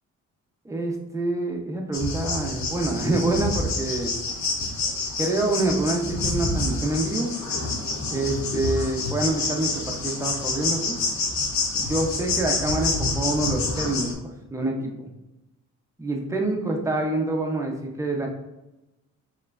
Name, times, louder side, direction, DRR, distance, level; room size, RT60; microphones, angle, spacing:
voice 1, 0.6-4.1 5.2-7.3 8.0-11.0 11.8-15.1 16.0-18.3, right 2 dB, 10° right, 1 dB, 0.7 m, -26 dB
sound 1, 1.9-14.1, left 3 dB, 65° left, 0.8 m, -28 dB
4.5 x 3.0 x 2.5 m, 0.96 s
cardioid pair, 90°, 30 cm